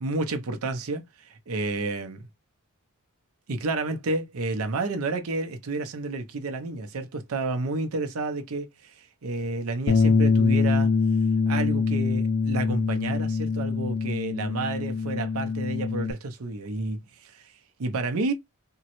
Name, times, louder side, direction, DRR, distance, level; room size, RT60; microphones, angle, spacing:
voice 1, 0.0-2.2 3.5-10.9 11.5-17.5 17.8-18.3, right 3 dB, 70° right, 0.6 m, -30 dB
Bass guitar, 9.9-16.1, left 4 dB, 50° left, 0.3 m, -24 dB
3.6 x 2.1 x 2.9 m
head